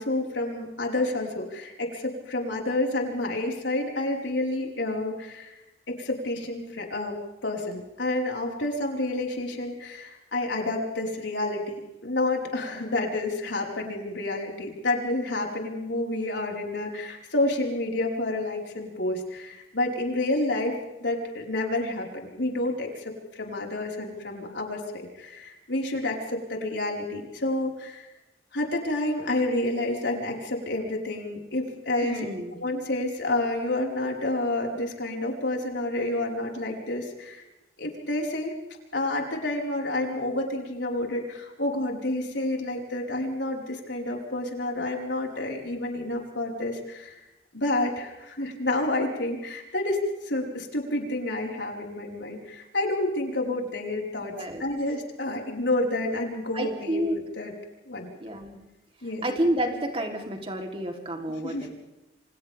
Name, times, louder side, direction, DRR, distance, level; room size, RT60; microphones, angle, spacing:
voice 1, 0.0-5.5 5.9-28.1 28.5-32.3 32.5-37.4 37.8-38.6 38.9-47.2 47.5-57.5 57.9-58.1 59.0-59.2 61.4-61.7, left 2 dB, 85° left, 0 dB, 5.0 m, -29 dB
voice 2, 32.0-32.6 54.4-54.6 56.5-57.2 58.2-58.6 59.2-61.7, right 1 dB, 35° right, 2 dB, 3.5 m, -29 dB
28.5 x 26.0 x 3.6 m, 0.98 s
head